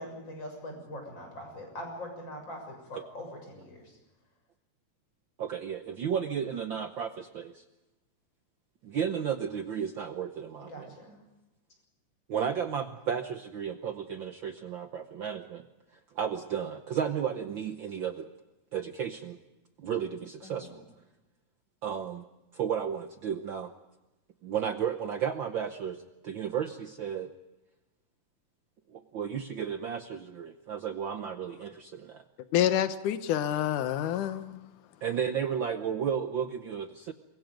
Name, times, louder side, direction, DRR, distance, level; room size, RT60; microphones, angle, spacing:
voice 1, 0.0-3.8 10.7-11.2 20.4-20.7, left 1 dB, 35° left, 7.4 m, -42 dB
voice 2, 5.4-7.6 8.8-11.0 12.3-15.6 16.1-18.3 18.7-19.4 19.8-20.8 21.8-22.2 22.5-23.7 24.4-27.3 28.9-32.2 35.0-37.1, right 8 dB, 85° right, 1.0 m, -33 dB
voice 3, 32.5-34.6, left 11 dB, 85° left, 2.6 m, -27 dB
28.5 x 23.5 x 5.2 m
omnidirectional pair, 3.5 m